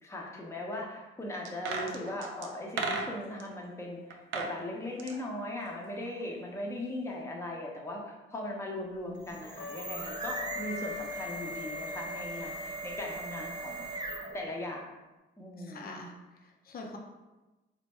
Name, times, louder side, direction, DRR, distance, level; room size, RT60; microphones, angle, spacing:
voice 1, 0.0-13.8 14.3-14.8 15.4-15.9, left 1 dB, 15° left, -2 dB, 0.8 m, -39 dB
sound 1, 1.5-3.5 4.1-4.6 4.8-6.2 6.5-6.6, right 4 dB, 90° right, 0.5 m, -36 dB
sound 2, 9.2-14.5, right 2 dB, 20° right, 0.7 m, -40 dB
Trumpet, 9.6-14.6, left 3 dB, 85° left, 0.4 m, -43 dB
voice 2, 15.6-17.0, left 2 dB, 50° left, 1 dB, 0.6 m, -45 dB
3.3 x 2.2 x 4.2 m, 1.1 s
cardioid pair, 90°, 20 cm